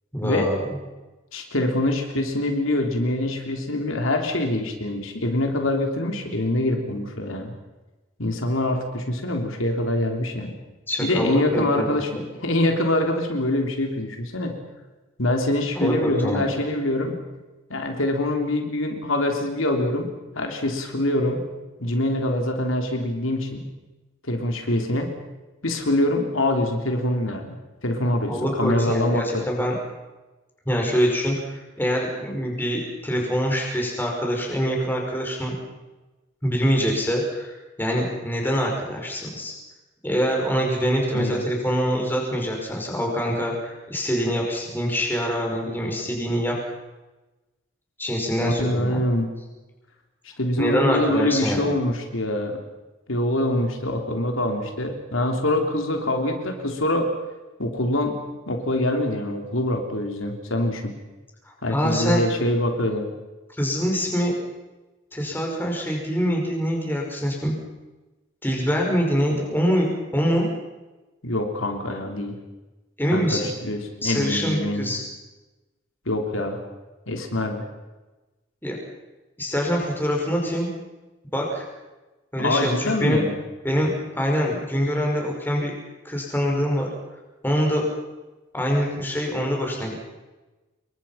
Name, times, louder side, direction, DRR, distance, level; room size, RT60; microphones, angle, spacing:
voice 1, 0.1-0.6 10.9-11.9 12.1-12.2 15.7-16.5 28.3-29.7 30.7-35.6 36.4-39.5 40.0-46.6 48.0-49.0 50.6-51.7 61.7-62.2 63.5-64.3 65.1-67.6 68.4-70.5 73.0-73.5 74.0-75.0 78.6-78.8 79.4-80.7 81.3-81.6 82.3-83.2 83.6-85.7 86.0-86.9 87.4-87.9 88.5-89.9, equal, 10° left, 0 dB, 5.5 m, -24 dB
voice 2, 1.3-7.5 8.2-10.6 11.0-12.1 12.4-14.6 15.2-17.2 17.7-20.1 20.4-21.4 21.8-23.6 24.2-25.1 25.6-29.5 41.1-41.4 48.4-49.3 50.4-52.6 53.1-57.1 57.6-58.2 58.5-60.9 61.6-63.1 71.2-72.4 73.1-74.9 76.1-76.6 77.1-77.6 82.4-83.3, left 1 dB, 75° left, 3 dB, 3.4 m, -24 dB
28.0 x 23.0 x 5.8 m, 1.1 s
head